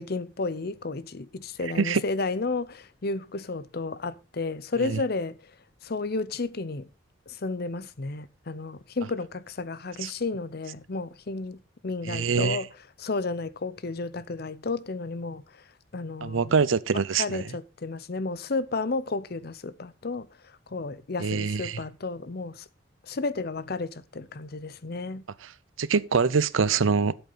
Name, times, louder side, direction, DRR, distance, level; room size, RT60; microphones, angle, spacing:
voice 1, 0.0-5.4 5.8-6.9 7.3-12.7 13.0-15.4 15.9-16.5 17.2-20.3 20.7-22.6 23.1-25.2, left 3 dB, 50° left, 0.7 m, -32 dB
voice 2, 12.0-12.6 16.2-17.4 21.2-21.8 25.4-25.5 25.8-27.1, right 5 dB, 90° right, 0.6 m, -24 dB
13.0 x 8.0 x 4.1 m
head